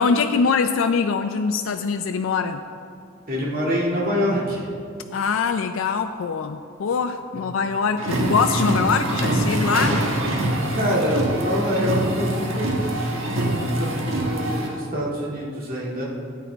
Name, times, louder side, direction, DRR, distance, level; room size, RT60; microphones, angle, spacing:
voice 1, 0.0-2.6 5.1-10.0, left 5 dB, 90° left, 7 dB, 0.4 m, -23 dB
voice 2, 3.3-4.7 7.3-7.4 10.7-16.1, equal, 45° right, -4 dB, 2.2 m, -26 dB
sound 1, 8.0-14.7, right 1 dB, 85° right, 1.4 m, -24 dB
13.0 x 8.6 x 3.4 m, 2.3 s
head